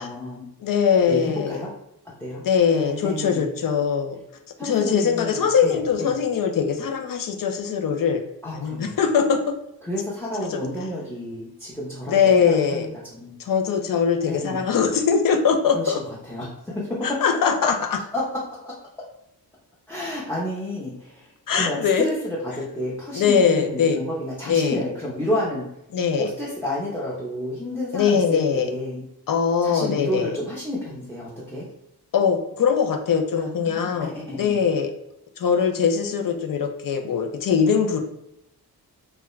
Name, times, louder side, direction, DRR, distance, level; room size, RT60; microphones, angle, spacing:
voice 1, 0.0-0.5 1.1-1.7 2.2-2.4 2.7-3.5 4.6-6.1 8.4-9.0 9.8-13.3 14.3-14.6 15.7-15.9 16.3-17.1 18.1-18.2 18.6-18.8 19.9-21.3 21.6-25.6 26.2-29.0 29.6-31.7 33.4-34.5, left 1 dB, 5° left, -6 dB, 0.7 m, -30 dB
voice 2, 0.6-1.6 2.4-4.2 4.6-8.2 8.5-9.4 10.5-10.6 12.1-12.9 13.4-16.0 17.0-18.0 21.5-22.1 23.1-24.0 24.5-24.8 25.9-26.3 27.9-28.7 29.3-30.4 32.1-34.9 35.4-38.0, left 6 dB, 55° left, 6 dB, 0.5 m, -21 dB
2.3 x 2.2 x 3.0 m, 0.83 s
cardioid pair, 65°, 40 cm